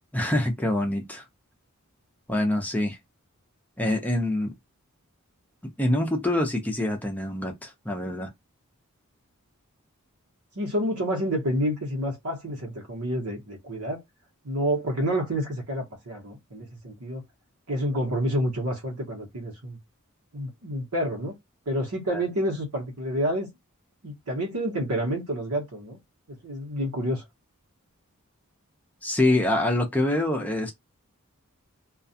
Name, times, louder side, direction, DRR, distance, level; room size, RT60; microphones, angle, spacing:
voice 1, 0.1-1.3 2.3-3.0 3.8-4.5 5.8-8.3 22.1-22.2 29.0-30.7, left 1 dB, 5° left, 0.5 m, -25 dB
voice 2, 10.5-14.0 14.4-17.2 17.7-19.8 20.3-21.3 21.7-23.5 24.0-26.0 26.4-27.2, equal, 80° right, 1.0 m, -29 dB
2.4 x 2.2 x 2.6 m
head